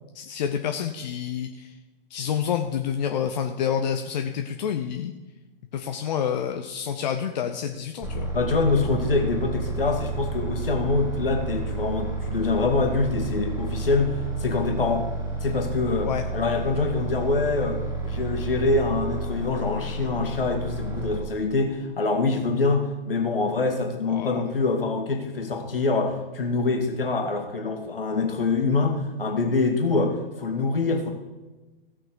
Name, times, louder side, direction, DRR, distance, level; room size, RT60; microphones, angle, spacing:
voice 1, 0.1-1.7 2.1-5.1 5.7-8.3 16.0-16.2 24.1-24.4, left 8 dB, 45° left, 5 dB, 0.8 m, -28 dB
sound 1, 8.0-21.2, right 3 dB, 10° right, 2.4 m, -31 dB
voice 2, 8.3-15.1 15.4-31.1, left 3 dB, 70° left, 3 dB, 2.0 m, -25 dB
16.0 x 6.0 x 4.7 m, 1.2 s
figure-of-eight pair, 110°, 29 cm